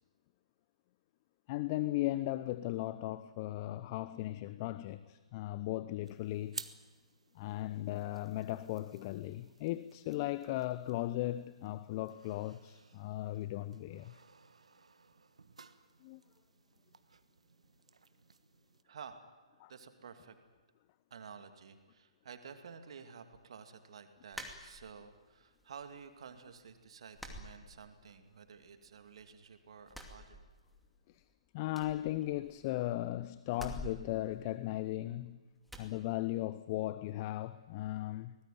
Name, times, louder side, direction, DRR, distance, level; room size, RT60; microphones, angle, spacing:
voice 1, 1.5-6.6 7.3-14.2 16.0-16.2 19.6-19.7 31.1-31.2 31.5-35.4 35.8-38.3, left 15 dB, 35° left, 0.7 m, -37 dB
sound 1, 6.0-18.8, right 4 dB, 75° right, 1.4 m, -55 dB
voice 2, 18.8-19.2 19.7-20.4 21.1-30.4, right 6 dB, 60° right, 2.5 m, -52 dB
sound 2, 24.3-25.2 25.6-26.3 26.6-26.7 27.1-28.3 28.6-29.4 29.8-31.0 31.2-31.3 31.7-32.8 33.5-35.2 35.7-35.9, equal, ahead, 2.6 m, -48 dB
24.5 x 19.0 x 9.4 m
figure-of-eight pair, 130°, 3 cm